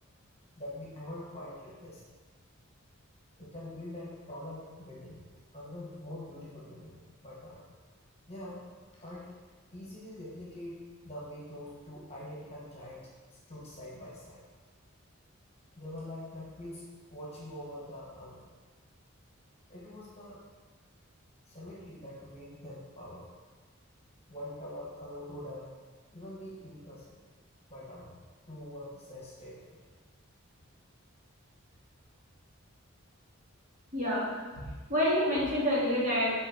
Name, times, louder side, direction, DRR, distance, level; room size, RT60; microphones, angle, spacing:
voice 1, 0.6-2.0 3.4-5.2 5.5-7.7 8.3-8.6 9.0-9.3 9.7-14.4 15.8-18.5 19.7-20.4 21.5-23.3 24.3-25.7 26.1-27.2 27.7-28.2 28.5-29.8, left 1 dB, 30° left, -5 dB, 1.5 m, -44 dB
voice 2, 33.9-34.3 34.9-36.4, left 1 dB, 40° right, -7 dB, 2.1 m, -27 dB
8.0 x 4.2 x 4.5 m, 1.4 s
head